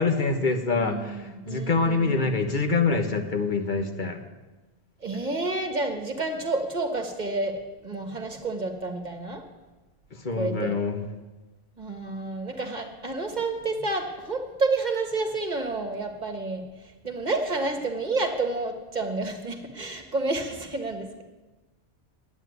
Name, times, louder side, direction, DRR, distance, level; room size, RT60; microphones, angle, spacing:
voice 1, 0.0-4.2 10.1-11.0, left 4 dB, 50° left, 6 dB, 1.3 m, -25 dB
voice 2, 0.7-2.2 5.0-9.4 10.3-10.8 11.8-21.2, right 3 dB, 45° right, 4 dB, 1.5 m, -30 dB
10.0 x 8.4 x 9.4 m, 1.2 s
omnidirectional pair, 1.1 m